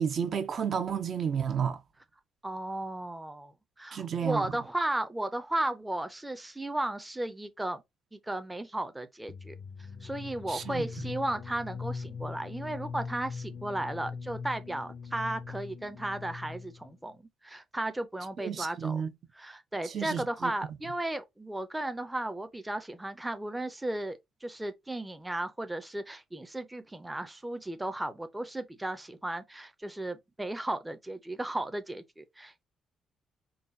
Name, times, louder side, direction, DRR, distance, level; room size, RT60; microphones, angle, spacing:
voice 1, 0.0-1.8 3.9-4.5 10.5-10.9 18.4-19.1 19.9-20.5, right 7 dB, 55° right, 0.6 m, -31 dB
voice 2, 2.4-3.5 3.8-7.8 8.1-9.5 10.0-19.0 19.3-32.6, right 1 dB, 10° right, 0.5 m, -35 dB
sound 1, 9.3-17.0, left 5 dB, 60° left, 0.5 m, -41 dB
3.9 x 2.2 x 3.8 m
cardioid pair, 90°, 0 cm